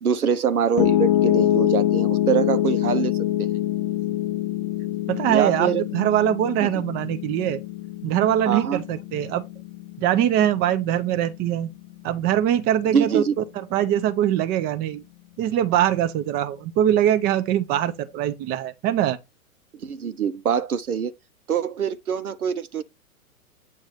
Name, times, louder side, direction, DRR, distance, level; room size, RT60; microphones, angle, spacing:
voice 1, 0.0-3.1 3.4-3.5 5.3-5.8 6.6-6.7 8.5-8.8 12.9-13.3 19.7-21.1 21.5-22.8, right 7 dB, 85° right, 0.8 m, -24 dB
Piano, 0.8-13.0, left 13 dB, 30° left, 0.5 m, -25 dB
voice 2, 5.1-7.6 8.0-9.4 10.0-11.7 12.0-15.0 15.4-19.2, right 11 dB, 20° right, 0.6 m, -22 dB
8.0 x 2.7 x 5.0 m
figure-of-eight pair, 110°, 43 cm